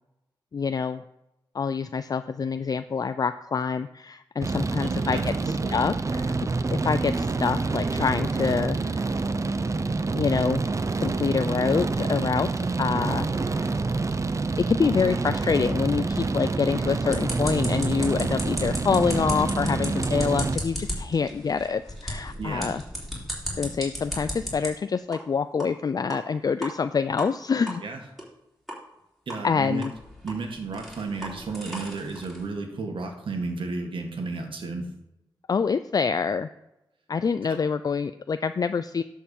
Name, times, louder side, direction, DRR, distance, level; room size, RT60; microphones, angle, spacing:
voice 1, 0.5-1.0 1.5-5.3 5.7-6.4 6.7-9.1 10.1-10.6 11.0-13.7 14.6-22.8 23.6-27.8 29.4-29.9 35.5-36.5 37.1-39.0, left 5 dB, 45° left, 11 dB, 0.4 m, -26 dB
sound 1, 4.4-20.6, right 3 dB, 35° right, 0.6 m, -27 dB
voice 2, 4.8-5.8 22.4-22.8 27.8-28.0 29.3-29.9 30.2-34.9 37.4-37.6, right 3 dB, 75° right, 3 dB, 1.8 m, -33 dB
sound 2, 17.1-24.7 25.1-25.2 25.6-25.7 26.1-26.2 26.6-26.7 27.2-27.3 27.7-27.8 28.2-28.3 28.7-28.8 29.3-29.4 29.8-32.5, left 1 dB, ahead, 3.9 m, -35 dB
10.5 x 4.6 x 7.1 m, 0.90 s
cardioid pair, 75°, 9 cm